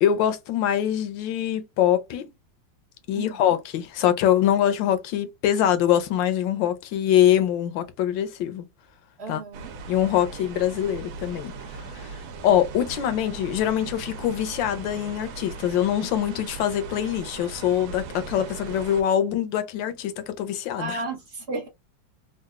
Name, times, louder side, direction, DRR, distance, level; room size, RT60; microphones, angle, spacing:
voice 1, 0.0-2.3 3.1-8.6 9.3-9.4 9.9-11.5 11.9-12.2 12.4-21.0, left 10 dB, 80° left, 1.3 m, -23 dB
voice 2, 3.1-3.6 9.2-9.7 12.4-12.6 20.7-21.7, right 3 dB, 55° right, 0.7 m, -34 dB
sound 1, 9.5-19.0, right 4 dB, 85° right, 1.5 m, -39 dB
3.9 x 2.3 x 2.3 m
omnidirectional pair, 2.1 m